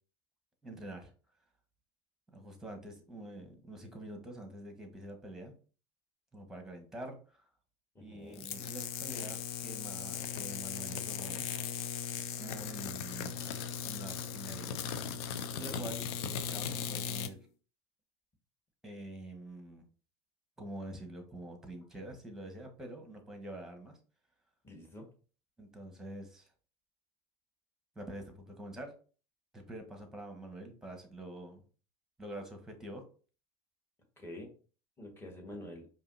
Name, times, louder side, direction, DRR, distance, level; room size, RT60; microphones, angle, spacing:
voice 1, 0.6-1.1 2.3-5.5 6.3-7.5 8.0-11.5 12.4-13.4 13.8-14.8 15.6-17.4 18.8-19.8 20.6-24.0 25.6-26.5 27.9-28.9 29.5-31.6 32.2-33.0, right 1 dB, 5° right, 4 dB, 1.2 m, -46 dB
voice 2, 7.9-8.5 15.5-15.8 24.6-25.1 34.2-34.5 35.0-35.9, left 1 dB, 15° left, 1 dB, 1.5 m, -47 dB
sound 1, 8.3-17.3, left 7 dB, 70° left, 0.5 m, -38 dB
4.9 x 2.8 x 2.6 m, 0.38 s
supercardioid pair, 100°, 14 cm